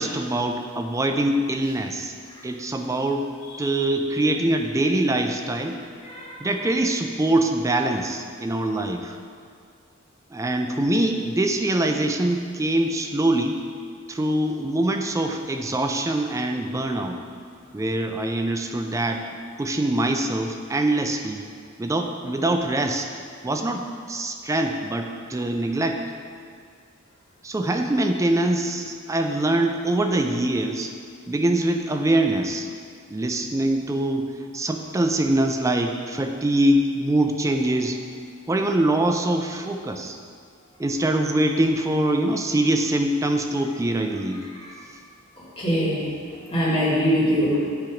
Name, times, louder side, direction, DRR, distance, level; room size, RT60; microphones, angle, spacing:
voice 1, 0.0-2.1 2.4-3.3 3.6-5.8 6.4-9.2 10.3-13.6 14.1-17.2 17.7-19.3 19.6-21.4 21.8-23.2 23.4-26.0 27.4-30.9 31.3-32.7 33.1-38.0 38.5-40.2 40.8-44.4, right 1 dB, 15° right, 4 dB, 0.3 m, -23 dB
voice 2, 45.6-46.0 46.5-47.6, equal, 25° left, -7 dB, 1.6 m, -22 dB
8.7 x 2.9 x 5.0 m, 2.2 s
head